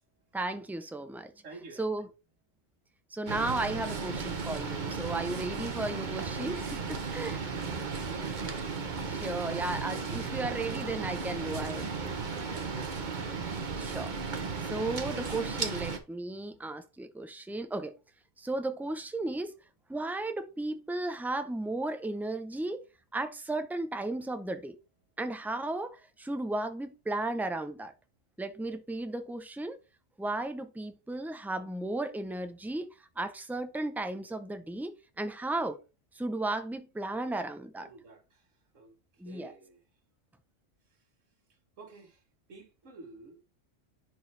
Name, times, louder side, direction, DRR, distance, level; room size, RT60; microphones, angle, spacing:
voice 1, 0.3-1.3 1.8-2.1 3.1-7.4 9.1-11.9 13.8-14.1 14.7-17.9 18.4-19.5 19.9-22.8 23.1-24.8 25.2-27.9 28.4-29.8 30.2-32.9 33.2-35.8 36.1-37.9 39.2-39.5, right 2 dB, ahead, 0.4 m, -35 dB
voice 2, 1.4-2.1 7.0-8.8 12.3-13.2 37.8-38.5 38.7-39.0 39.2-39.8 41.8-42.2 42.5-43.4, right 3 dB, 65° right, 1.8 m, -50 dB
sound 1, 3.3-16.0, right 5 dB, 40° right, 1.0 m, -35 dB
10.5 x 4.5 x 3.3 m
omnidirectional pair, 1.4 m